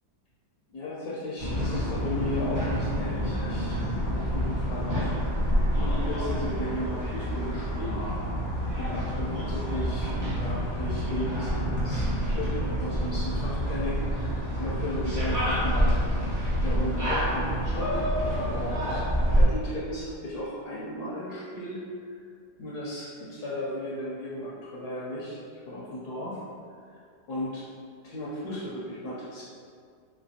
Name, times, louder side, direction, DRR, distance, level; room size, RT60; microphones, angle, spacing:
voice 1, 0.7-3.8 4.1-5.2 5.8-8.0 8.8-15.9 16.6-18.1 18.5-19.0 19.3-22.2 22.6-26.4 26.9-27.0 27.3-27.6 28.0-29.4, left 1 dB, 75° left, -7 dB, 1.2 m, -35 dB
sound 1, 1.4-19.4, equal, 15° right, 0.9 m, -27 dB
3.3 x 3.3 x 2.6 m, 2.2 s
omnidirectional pair, 1.8 m